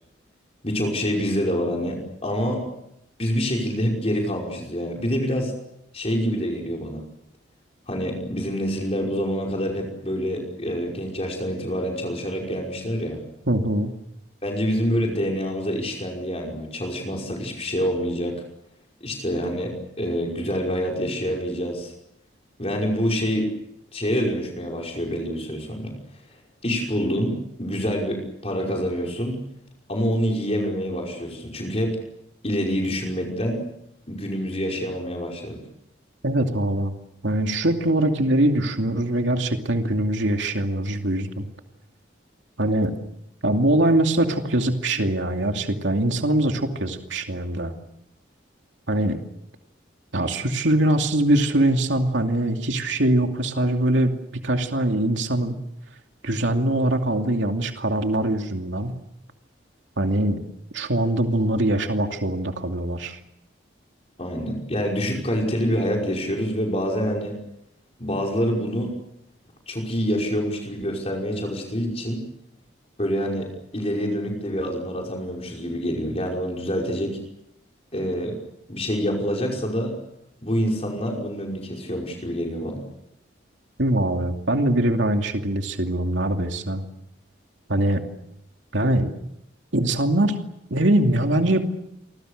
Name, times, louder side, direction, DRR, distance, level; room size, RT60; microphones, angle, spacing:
voice 1, 0.6-2.7 3.2-5.5 5.9-7.1 7.9-13.2 14.4-18.4 19.0-21.9 22.6-23.5 23.9-25.9 26.6-29.4 29.9-32.0 32.4-33.6 34.1-35.6 64.2-67.4 68.0-68.9 69.7-72.2 73.0-77.2 77.9-78.4 78.7-80.0 80.4-82.8, equal, 30° left, 0 dB, 5.5 m, -26 dB
voice 2, 13.5-13.9 36.2-36.9 37.2-41.5 42.6-42.9 43.4-47.7 48.9-49.2 50.1-55.6 56.2-58.9 60.0-60.4 60.7-63.2 83.8-86.8 87.7-88.0 88.7-89.1 89.7-90.3 90.7-91.7, right 1 dB, 75° right, 4 dB, 2.6 m, -22 dB
29.5 x 25.0 x 6.6 m, 0.79 s
head